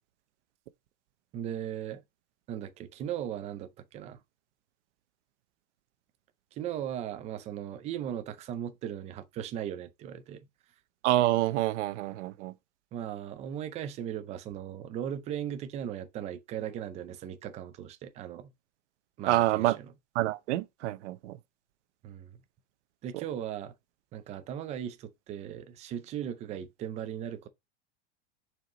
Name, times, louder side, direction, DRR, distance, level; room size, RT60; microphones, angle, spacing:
voice 1, 1.3-2.0 2.5-4.2 6.5-10.5 12.9-18.5 19.2-19.9 22.0-22.4 23.0-23.7 24.1-27.5, right 10 dB, 20° right, 0.5 m, -38 dB
voice 2, 11.0-12.5 19.3-19.8 20.1-21.4, right 16 dB, 75° right, 0.8 m, -27 dB
6.1 x 4.6 x 3.8 m
supercardioid pair, 165°, 35 cm